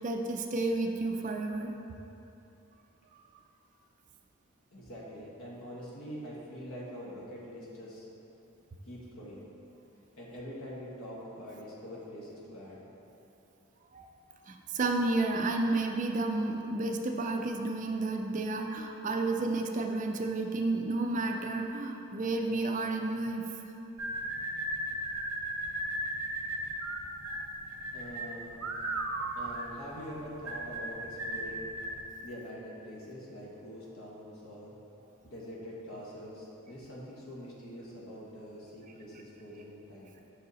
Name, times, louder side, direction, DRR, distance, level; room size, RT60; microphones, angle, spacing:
voice 1, 0.0-1.7 13.9-14.1 14.5-23.4, right 2 dB, 35° right, 3 dB, 0.4 m, -31 dB
voice 2, 4.7-8.1 8.8-9.4 10.2-12.8 27.9-28.6 29.3-31.7 32.2-34.8 35.2-40.1, equal, 70° left, -5 dB, 1.3 m, -44 dB
sound 1, 24.0-32.0, right 1 dB, 70° right, 0.7 m, -36 dB
5.6 x 5.4 x 4.0 m, 2.8 s
head